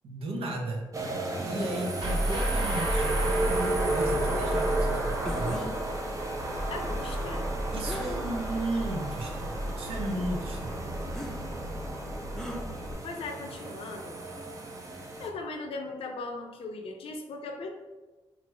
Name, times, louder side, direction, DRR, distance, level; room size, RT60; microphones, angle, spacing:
voice 1, 0.0-0.8 1.4-5.6 7.7-10.8, right 2 dB, 80° right, 0 dB, 0.7 m, -35 dB
sound 1, 0.9-15.3, right 2 dB, 35° right, 0.6 m, -34 dB
sound 2, 2.0-12.9, right 1 dB, 60° right, 1.3 m, -32 dB
sound 3, 5.2-5.7 7.8-8.5 9.2-9.3 11.1-11.4 12.4-12.6, equal, 5° left, 0.6 m, -38 dB
voice 2, 6.7-7.5 13.0-14.2 15.2-17.7, left 3 dB, 75° left, 4 dB, 0.5 m, -38 dB
3.0 x 2.5 x 4.3 m, 1.2 s
cardioid pair, 70°, 10 cm